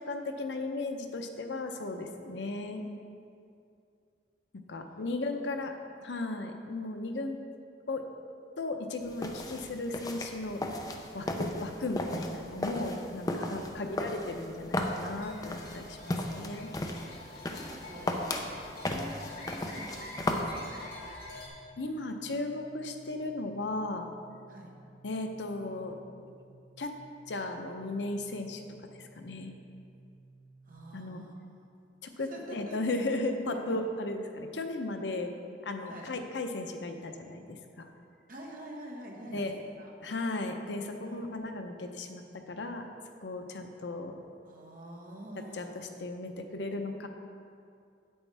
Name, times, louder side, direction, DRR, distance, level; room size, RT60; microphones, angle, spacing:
voice 1, 0.0-2.8 4.7-5.7 6.0-7.4 7.9-8.0 8.6-10.6 11.1-16.7 21.8-24.1 25.0-26.0 26.8-26.9 27.3-28.6 28.9-29.5 30.9-31.2 32.0-35.3 35.6-37.9 39.3-39.5 40.0-42.9 43.2-44.1 45.5-47.1, left 2 dB, 90° left, 5 dB, 0.7 m, -36 dB
sound 1, 9.0-20.4, left 1 dB, 20° left, 0.5 m, -36 dB
sound 2, 15.2-21.5, left 1 dB, 55° left, 1.9 m, -47 dB
voice 2, 15.8-16.7 17.3-20.9 24.5-24.7 30.7-31.4 32.2-32.8 33.7-33.8 35.9-36.1 38.3-39.9 41.1-41.3 44.4-45.7, equal, 50° right, -1 dB, 1.3 m, -47 dB
sound 3, 20.9-30.7, right 2 dB, 40° left, 2.0 m, -57 dB
8.8 x 8.0 x 3.4 m, 2.4 s
head